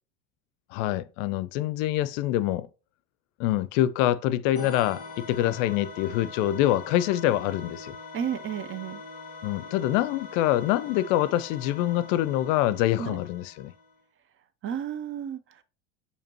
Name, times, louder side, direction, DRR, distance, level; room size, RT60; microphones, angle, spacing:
voice 1, 0.7-2.7 3.4-8.0 9.4-13.7, left 13 dB, 70° left, 0.5 m, -25 dB
sound 1, 4.6-14.0, left 4 dB, 15° left, 2.3 m, -43 dB
voice 2, 8.1-9.0 13.0-13.2 14.6-15.6, right 8 dB, 35° right, 0.5 m, -32 dB
6.5 x 2.8 x 2.9 m
supercardioid pair, 100°, 39 cm